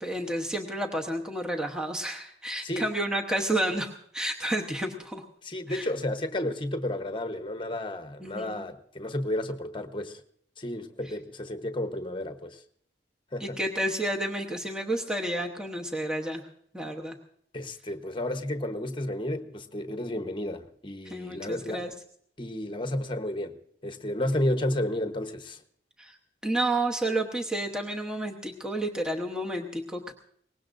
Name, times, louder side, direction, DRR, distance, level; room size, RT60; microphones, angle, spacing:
voice 1, 0.0-5.2 5.7-5.9 8.2-8.6 13.4-16.4 16.7-17.2 21.1-21.9 26.0-26.2 26.4-30.1, right 1 dB, 5° right, 1.0 m, -30 dB
voice 2, 5.4-10.2 10.6-12.6 13.3-13.6 17.5-21.8 22.4-23.6 23.8-25.6, left 1 dB, 25° left, 1.0 m, -32 dB
23.0 x 19.0 x 2.6 m
head